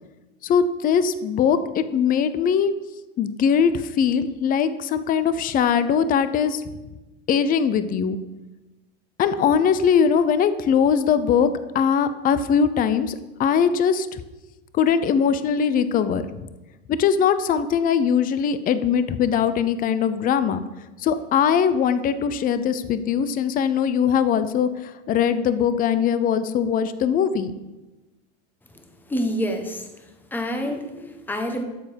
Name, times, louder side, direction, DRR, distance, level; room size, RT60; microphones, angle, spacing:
voice 1, 0.4-2.7 3.2-6.6 7.3-8.2 9.2-11.5 11.7-14.2 14.7-16.5 16.9-20.6 21.0-27.5, left 7 dB, 25° left, 13 dB, 0.6 m, -21 dB
voice 2, 29.1-29.8 30.3-31.6, equal, 5° left, 5 dB, 1.1 m, -27 dB
12.5 x 7.0 x 5.2 m, 1.1 s
supercardioid pair, 135°, 34 cm